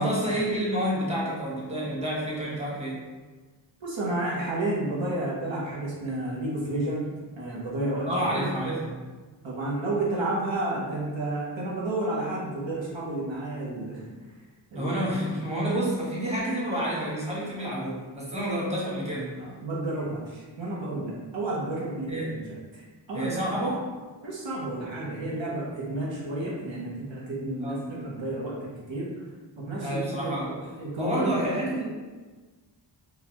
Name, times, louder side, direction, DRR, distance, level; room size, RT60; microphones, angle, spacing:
voice 1, 0.0-3.0 8.1-9.0 14.7-19.4 22.1-22.4 23.1-23.8 27.6-27.8 29.8-30.5 31.0-31.9, right 1 dB, 15° right, -6 dB, 1.2 m, -29 dB
voice 2, 3.8-8.5 9.4-14.0 14.7-14.9 19.4-23.5 24.2-29.1 29.6-30.4 30.8-31.6, right 2 dB, 85° right, -6 dB, 1.0 m, -31 dB
3.8 x 2.3 x 2.9 m, 1.3 s
wide cardioid pair, 55°, 45 cm